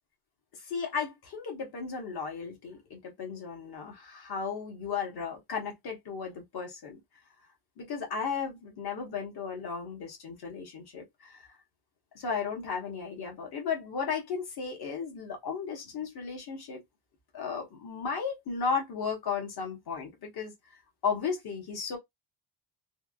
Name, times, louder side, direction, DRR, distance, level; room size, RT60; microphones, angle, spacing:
voice 1, 0.7-7.0 7.8-11.4 12.1-16.8 17.3-20.5 21.0-22.0, left 6 dB, 50° left, 1.3 m, -35 dB
3.5 x 2.4 x 2.3 m
cardioid pair, 140°, 48 cm